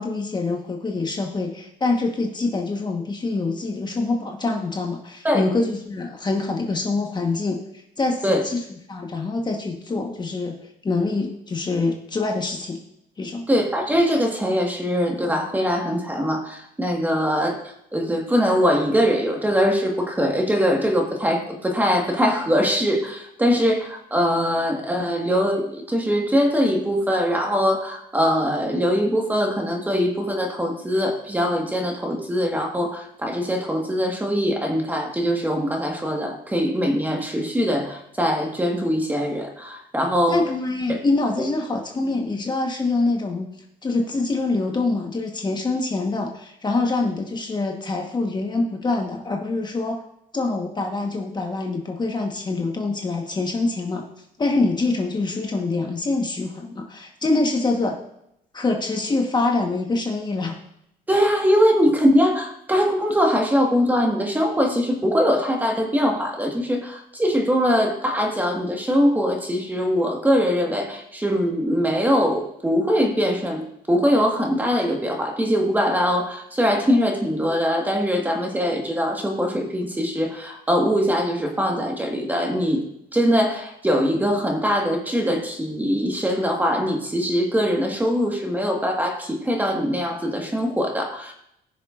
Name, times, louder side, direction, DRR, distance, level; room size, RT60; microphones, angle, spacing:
voice 1, 0.0-7.6 8.0-10.6 10.8-12.8 13.2-13.5 40.3-43.5 43.8-50.0 50.3-54.0 54.4-58.0 58.5-60.6, left 3 dB, 25° left, 2 dB, 1.2 m, -25 dB
voice 2, 13.5-17.6 17.9-40.4 40.9-41.0 61.1-82.8 83.1-91.3, equal, 10° right, 2 dB, 1.6 m, -22 dB
19.5 x 6.6 x 2.5 m, 0.77 s
cardioid pair, 110°, 17 cm